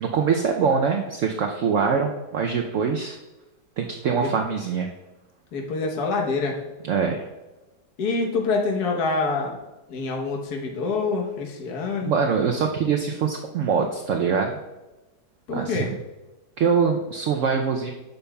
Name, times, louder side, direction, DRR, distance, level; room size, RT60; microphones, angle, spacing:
voice 1, 0.0-3.2 3.8-4.9 6.8-7.2 12.0-14.6 15.5-15.9 16.6-17.9, right 6 dB, 75° right, 3 dB, 0.7 m, -23 dB
voice 2, 5.5-6.6 8.0-9.6 9.9-12.1 15.5-15.9, left 3 dB, 65° left, 1 dB, 1.5 m, -26 dB
9.4 x 6.8 x 2.3 m, 1.1 s
omnidirectional pair, 1.9 m